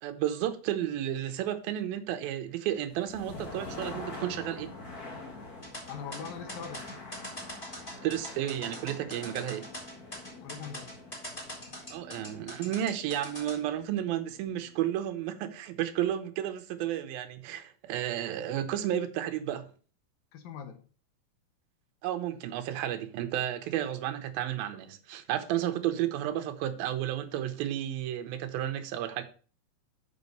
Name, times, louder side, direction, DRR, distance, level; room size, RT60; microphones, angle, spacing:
voice 1, 0.0-4.7 8.0-9.7 11.9-19.7 22.0-29.2, right 11 dB, 80° right, 2.7 m, -32 dB
sound 1, 2.8-14.7, left 2 dB, 45° left, 1.3 m, -45 dB
sound 2, 5.6-13.6, equal, 15° left, 4.1 m, -42 dB
voice 2, 5.9-6.9 10.1-10.9 20.3-20.8, left 7 dB, 75° left, 2.8 m, -42 dB
7.2 x 6.6 x 5.3 m
omnidirectional pair, 4.2 m